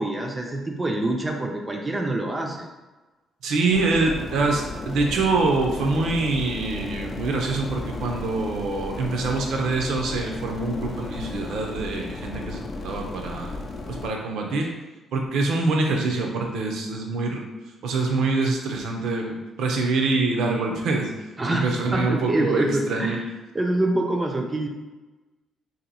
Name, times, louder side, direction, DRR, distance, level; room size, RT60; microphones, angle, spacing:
voice 1, 0.0-2.7 21.4-23.3 23.5-24.7, right 1 dB, 20° right, 1 dB, 0.4 m, -25 dB
voice 2, 3.4-13.6 13.9-14.7 15.1-17.4 17.8-21.1 21.5-23.2, right 3 dB, 75° right, 2 dB, 0.6 m, -25 dB
sound 1, 3.7-14.1, left 2 dB, 45° left, 0.5 m, -34 dB
2.9 x 2.6 x 4.0 m, 1.2 s
cardioid pair, 90°, 0 cm